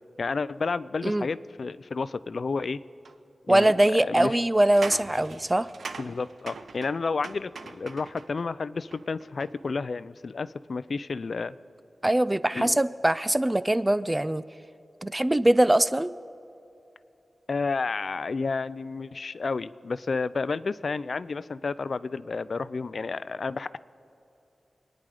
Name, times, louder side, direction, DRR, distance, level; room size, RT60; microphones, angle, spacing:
voice 1, 0.2-2.8 3.5-4.4 6.0-11.6 12.5-12.8 17.5-23.8, left 4 dB, 60° left, 17 dB, 0.4 m, -31 dB
sound 1, 3.0-3.1 4.6-8.5 8.9-9.7, right 4 dB, 85° right, 0.7 m, -42 dB
voice 2, 3.5-5.7 12.0-14.4 15.0-16.1, right 1 dB, 15° right, 15 dB, 0.4 m, -22 dB
27.0 x 10.0 x 4.9 m, 2.8 s
wide cardioid pair, 100°, 0 cm